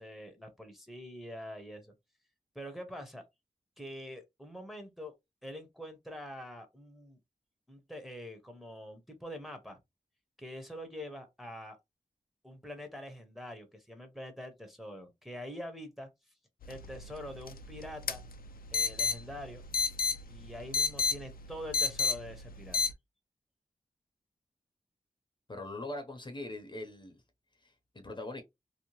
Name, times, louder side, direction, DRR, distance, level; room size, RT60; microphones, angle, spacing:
voice 1, 0.0-1.9 2.5-3.2 3.8-5.1 5.4-7.2 7.7-9.8 10.4-11.8 12.4-16.1 16.7-18.2 18.7-19.6 20.3-22.8, equal, ahead, 0.7 m, -45 dB
sound 1, 16.6-22.9, left 5 dB, 80° left, 0.4 m, -33 dB
voice 2, 25.5-27.2 27.6-28.4, left 2 dB, 35° left, 0.6 m, -42 dB
2.7 x 2.1 x 2.9 m
wide cardioid pair, 90°, 15 cm